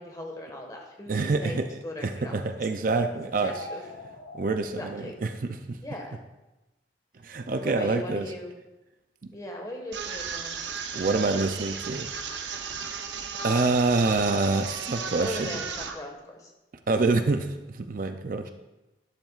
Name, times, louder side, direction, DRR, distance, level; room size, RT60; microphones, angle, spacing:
voice 1, 0.0-2.3 3.2-3.8 4.6-5.2 5.8-6.2 7.6-8.5 9.3-10.7 15.2-16.5 18.4-18.5, left 1 dB, 20° left, 1 dB, 1.5 m, -38 dB
voice 2, 1.1-1.7 2.0-3.5 4.3-5.8 7.2-8.3 9.2-9.3 10.9-12.1 13.4-15.6 16.9-18.5, right 3 dB, 50° right, 7 dB, 0.5 m, -26 dB
sound 1, 3.4-4.6, left 2 dB, 90° left, 2.1 m, -41 dB
sound 2, 9.9-15.9, right 6 dB, 85° right, 0.9 m, -35 dB
11.5 x 10.5 x 2.5 m, 1.0 s
head